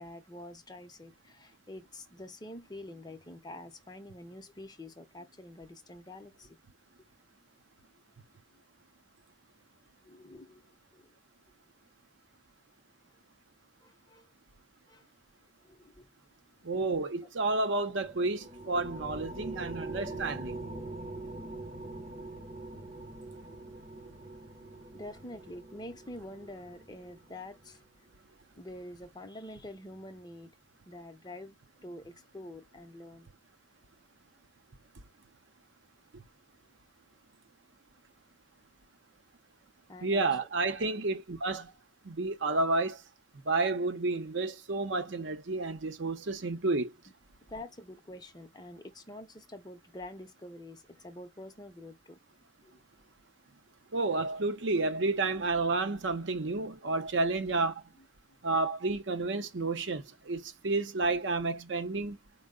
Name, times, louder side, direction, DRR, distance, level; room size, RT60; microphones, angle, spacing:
voice 1, 0.0-6.6 8.5-8.6 10.0-10.6 10.9-11.1 13.8-14.3 14.9-15.0 15.6-16.1 24.9-27.8 28.6-30.5 30.8-33.3 39.9-40.3 40.7-41.1 47.5-52.2 52.6-52.8 58.3-58.4, left 1 dB, 20° left, 0.6 m, -47 dB
voice 2, 16.6-20.6 36.1-36.2 40.0-41.7 42.0-43.0 43.4-46.9 53.9-57.8 58.4-62.2, right 3 dB, 65° right, 0.7 m, -31 dB
sound 1, 18.0-27.7, right 2 dB, 30° right, 0.7 m, -43 dB
4.5 x 2.0 x 3.6 m
head